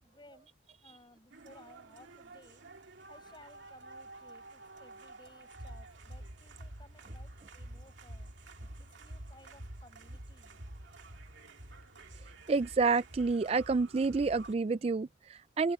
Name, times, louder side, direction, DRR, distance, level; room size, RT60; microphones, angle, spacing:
voice 1, 0.0-0.5 0.8-2.6 3.1-8.3 8.8-10.6, left 2 dB, 25° left, 5.2 m, -59 dB
sound 1, 1.3-14.5, right 1 dB, 80° right, 2.3 m, -49 dB
voice 2, 12.5-15.7, right 4 dB, 30° right, 0.3 m, -29 dB
head